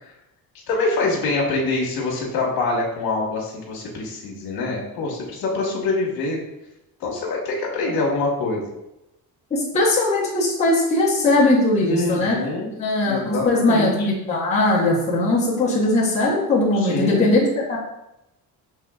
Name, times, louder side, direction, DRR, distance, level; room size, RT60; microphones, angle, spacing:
voice 1, 0.7-6.4 7.0-8.6 11.8-12.7 13.1-14.1 16.7-17.3, left 3 dB, 75° left, -3 dB, 1.3 m, -25 dB
voice 2, 9.5-12.4 12.8-17.4, left 2 dB, 20° left, -6 dB, 0.8 m, -19 dB
5.5 x 3.3 x 2.3 m, 0.90 s
cardioid pair, 175°, 37 cm